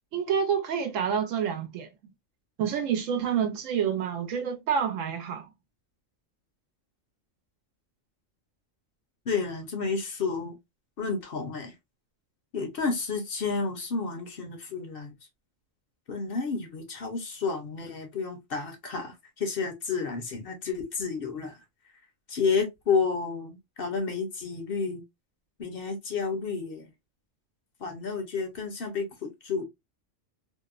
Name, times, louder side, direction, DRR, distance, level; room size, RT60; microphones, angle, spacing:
voice 1, 0.1-1.9 2.6-5.5, right 7 dB, 90° right, 1.0 m, -28 dB
voice 2, 9.3-10.5 11.0-11.7 12.5-15.1 16.1-21.6 22.3-25.0 25.6-26.9 27.8-29.7, left 5 dB, 55° left, 0.7 m, -31 dB
2.8 x 2.0 x 2.3 m
omnidirectional pair, 1.3 m